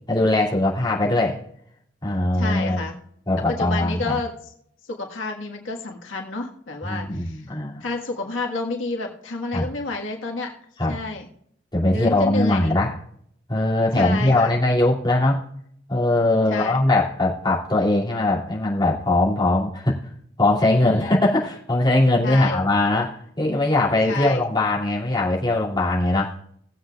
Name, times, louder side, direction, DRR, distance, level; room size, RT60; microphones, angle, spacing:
voice 1, 0.1-1.4 2.0-2.8 3.3-4.2 6.8-7.8 9.5-9.7 10.8-11.0 11.7-12.9 13.5-15.4 15.9-20.0 20.4-26.3, left 2 dB, 25° left, -5 dB, 2.7 m, -21 dB
voice 2, 2.3-2.9 3.5-4.5 4.8-7.4 7.8-10.5 10.9-11.3 11.9-12.8 13.9-14.5 16.5-16.8 20.7-21.2 22.2-22.6 24.1-24.4, left 3 dB, 90° left, 1 dB, 1.7 m, -29 dB
19.0 x 7.8 x 2.5 m, 0.68 s
head